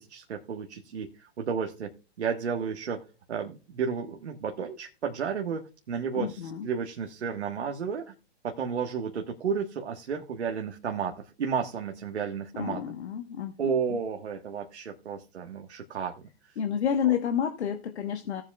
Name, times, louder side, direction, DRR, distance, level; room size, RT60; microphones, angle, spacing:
voice 1, 0.1-1.9 2.2-3.0 3.3-8.1 8.4-12.8 13.6-16.3, right 6 dB, 80° right, 3 dB, 1.4 m, -32 dB
voice 2, 6.1-6.7 12.5-14.0 16.6-18.4, left 8 dB, 75° left, 6 dB, 1.1 m, -30 dB
17.5 x 7.4 x 2.3 m, 0.34 s
hypercardioid pair, 130°, 33 cm